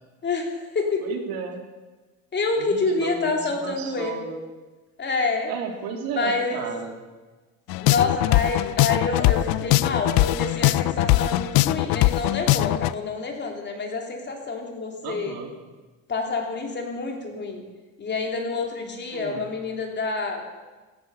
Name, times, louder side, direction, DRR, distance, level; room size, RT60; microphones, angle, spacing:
voice 1, 0.2-1.0 2.3-4.2 5.0-5.5 6.2-6.6 7.8-15.3 16.1-17.6 18.0-20.4, left 4 dB, 30° left, 2 dB, 3.1 m, -27 dB
voice 2, 1.0-1.6 2.6-4.4 5.5-7.0 15.0-15.5 19.1-19.5, right 6 dB, 85° right, 3 dB, 2.9 m, -33 dB
sound 1, 7.7-12.9, left 17 dB, 80° left, 0.6 m, -21 dB
16.0 x 12.5 x 6.9 m, 1.3 s
cardioid pair, 140°, 35 cm